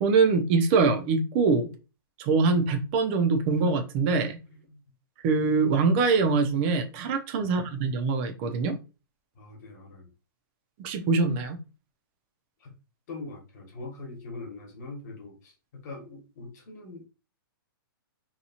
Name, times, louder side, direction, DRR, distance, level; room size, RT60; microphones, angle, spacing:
voice 1, 0.0-1.7 2.2-4.4 5.2-8.7 10.8-11.6, right 4 dB, 30° right, 0.5 m, -23 dB
voice 2, 9.3-10.1 12.6-12.8 13.1-17.1, left 3 dB, 45° left, 1.1 m, -42 dB
2.9 x 2.3 x 2.7 m
hypercardioid pair, 155°, 12 cm